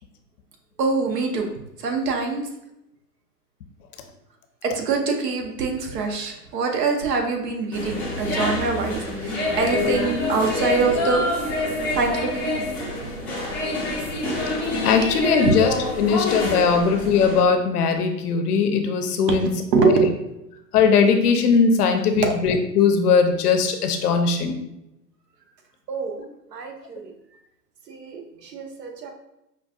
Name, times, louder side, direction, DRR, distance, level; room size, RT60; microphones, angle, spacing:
voice 1, 0.8-1.5 1.8-2.5 4.6-11.3 11.6-12.9 14.2-14.4 15.3-15.6 19.2-20.2 22.1-22.3 25.9-26.2 26.5-27.1 27.9-29.1, right 4 dB, 70° right, 2 dB, 0.9 m, -24 dB
sound 1, 7.7-17.4, left 2 dB, 5° left, 0.4 m, -26 dB
voice 2, 14.8-19.5 19.8-19.9 20.7-24.6, left 5 dB, 65° left, 6 dB, 0.7 m, -19 dB
5.5 x 2.3 x 2.4 m, 0.87 s
hypercardioid pair, 120°, 50 cm